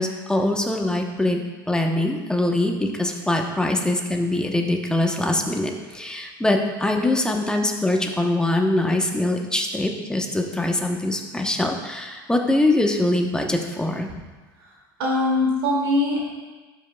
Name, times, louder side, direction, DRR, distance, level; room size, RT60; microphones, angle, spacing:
voice 1, 0.0-1.4 1.7-14.1, left 1 dB, 5° left, 2 dB, 1.0 m, -23 dB
voice 2, 15.0-16.3, left 2 dB, 80° right, -4 dB, 2.5 m, -22 dB
12.5 x 5.6 x 2.4 m, 1.3 s
hypercardioid pair, 85°, 12 cm